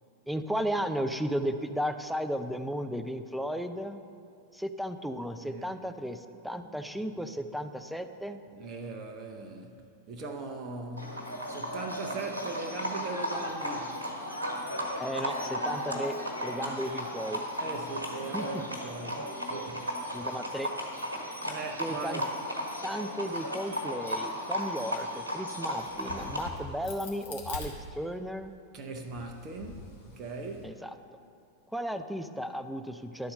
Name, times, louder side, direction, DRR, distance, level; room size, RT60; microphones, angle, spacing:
voice 1, 0.3-4.0 4.5-8.4 15.0-16.2 16.4-17.4 18.3-18.6 19.2-19.3 20.1-20.7 21.8-22.2 22.8-28.5 30.6-30.9 31.7-33.3, equal, ahead, 9 dB, 0.4 m, -34 dB
voice 2, 5.4-5.8 8.5-14.0 16.6-16.8 17.6-19.9 21.4-22.3 28.7-30.8, right 3 dB, 35° right, 4 dB, 0.7 m, -40 dB
Livestock farm animals working animals, 11.0-26.5, equal, 80° right, 1.3 m, -35 dB
Crack, 25.8-28.5 29.0-30.6, left 3 dB, 55° left, 1.4 m, -44 dB
11.5 x 4.2 x 6.5 m, 2.4 s
figure-of-eight pair, 90°, 0 cm